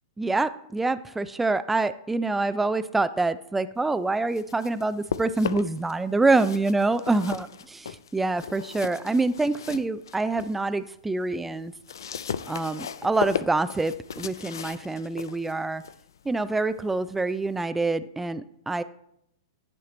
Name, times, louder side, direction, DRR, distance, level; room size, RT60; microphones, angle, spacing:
voice 1, 0.2-11.7 12.5-15.8 16.3-18.8, right 3 dB, 5° right, 13 dB, 0.3 m, -26 dB
sound 1, 4.1-5.9 6.2-10.6 11.0-17.6, left 7 dB, 80° left, 0.3 m, -37 dB
10.5 x 4.4 x 3.9 m, 0.75 s
hypercardioid pair, 120°, 2 cm